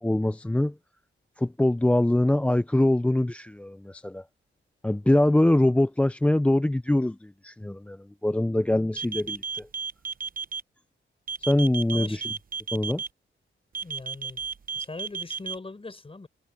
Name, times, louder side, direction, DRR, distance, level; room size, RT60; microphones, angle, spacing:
voice 1, 0.0-0.7 1.4-4.2 4.8-9.7 11.4-12.2 12.7-13.0, left 1 dB, 5° left, 0.4 m, -23 dB
sound 1, 8.9-10.6 11.3-13.1 13.7-15.5, right 6 dB, 40° right, 0.9 m, -32 dB
voice 2, 11.9-12.3 13.8-14.4 14.7-16.3, left 3 dB, 25° left, 4.5 m, -41 dB
cardioid pair, 100°, 21 cm